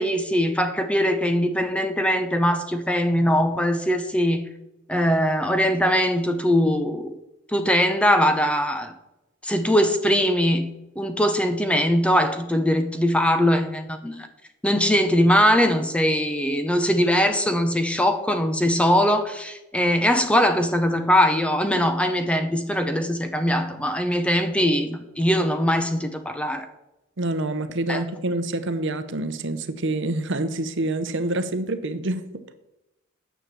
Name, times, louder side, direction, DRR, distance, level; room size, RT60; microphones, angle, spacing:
voice 1, 0.0-4.4 4.9-7.1 7.5-8.9 9.4-14.3 14.6-26.7 27.9-28.0, equal, 5° left, 0.7 m, -21 dB
voice 2, 27.2-32.2, right 2 dB, 60° right, 0.9 m, -27 dB
9.6 x 7.0 x 7.5 m
head